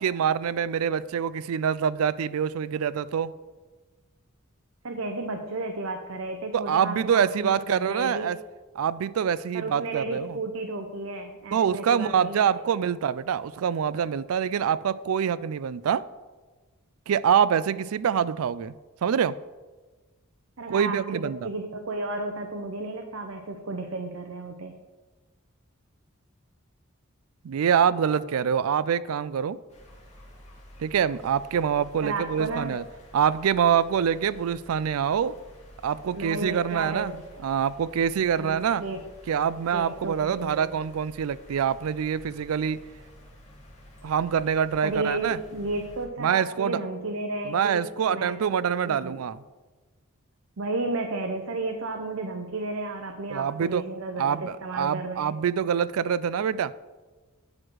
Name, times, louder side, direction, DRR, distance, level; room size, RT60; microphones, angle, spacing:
voice 1, 0.0-3.3 6.5-8.4 8.8-10.4 11.5-16.0 17.1-18.7 19.0-19.4 20.7-21.5 27.4-29.6 30.8-32.8 33.1-35.4 35.8-37.1 37.4-38.8 39.3-42.8 44.0-45.4 46.2-46.8 47.4-49.4 53.3-53.9 54.2-56.7, right 8 dB, 90° right, 17 dB, 0.4 m, -25 dB
voice 2, 4.8-8.3 9.5-12.8 20.6-24.7 32.0-32.8 36.1-37.2 38.4-39.0 39.7-40.6 44.8-47.8 48.1-48.4 48.8-49.2 50.6-55.4, right 2 dB, 70° right, 4 dB, 0.7 m, -33 dB
sound 1, 29.7-46.1, equal, 35° left, 2.3 m, -50 dB
9.7 x 6.1 x 4.7 m, 1.3 s
head